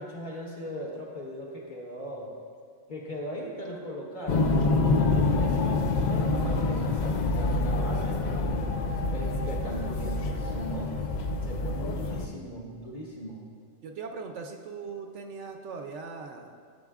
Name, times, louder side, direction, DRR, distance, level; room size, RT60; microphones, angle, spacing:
voice 1, 0.0-2.3 2.9-8.7 9.1-11.0 11.4-13.4, equal, 40° left, -4 dB, 1.4 m, -39 dB
sound 1, 4.3-12.3, left 3 dB, 75° left, 0.4 m, -26 dB
voice 2, 13.8-16.6, right 5 dB, 70° right, 4 dB, 0.9 m, -40 dB
11.5 x 7.5 x 2.4 m, 2.3 s
omnidirectional pair, 1.3 m